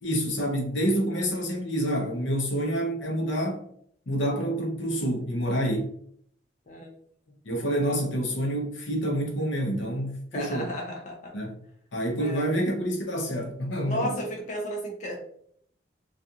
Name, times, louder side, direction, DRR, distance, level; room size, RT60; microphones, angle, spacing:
voice 1, 0.0-3.6 4.1-5.9 7.4-10.7 11.3-11.5 11.9-14.2, equal, 85° left, 0 dB, 0.7 m, -28 dB
voice 2, 10.3-11.3 12.2-12.5 13.9-15.3, equal, 40° left, 0 dB, 0.5 m, -33 dB
2.4 x 2.4 x 2.7 m, 0.66 s
head